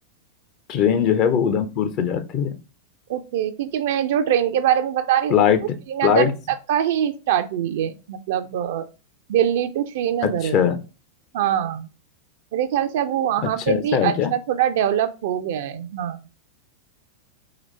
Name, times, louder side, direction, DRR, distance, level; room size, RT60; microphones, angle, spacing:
voice 1, 0.7-2.5 5.3-5.6 6.0-6.3 10.2-10.8 13.4-14.3, left 8 dB, 40° left, 0.5 m, -20 dB
voice 2, 3.1-5.4 5.9-6.3 6.7-8.9 9.3-10.6 11.3-11.9 12.5-16.2, right 10 dB, 55° right, 0.4 m, -23 dB
3.9 x 3.0 x 3.1 m
figure-of-eight pair, 90°, 0 cm